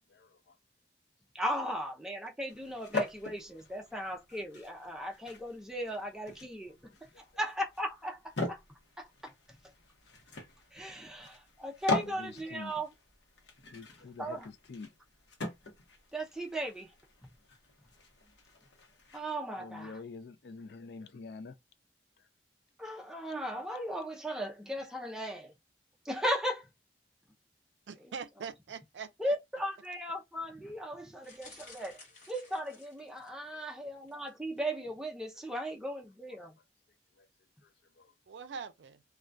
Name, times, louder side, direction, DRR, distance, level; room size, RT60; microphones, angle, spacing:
voice 1, 0.1-0.6 6.9-7.3 12.0-12.8 13.6-15.0 19.5-21.6 22.2-22.3 33.5-33.8 36.3-36.4 37.2-37.3 37.6-38.1, left 4 dB, 65° left, 0.4 m, -48 dB
voice 2, 1.3-8.6 9.0-9.3 10.7-12.9 14.2-14.5 16.1-16.9 19.1-20.0 22.8-25.5 26.0-26.7 29.2-32.0 32.3-36.6, equal, 5° right, 0.4 m, -37 dB
sound 1, 2.5-19.2, left 2 dB, 85° left, 0.8 m, -42 dB
voice 3, 27.9-29.3 38.3-39.0, right 6 dB, 85° right, 0.4 m, -43 dB
sound 2, 31.2-33.5 34.0-34.3 34.6-34.7, left 3 dB, 40° left, 1.0 m, -55 dB
2.2 x 2.2 x 2.5 m
head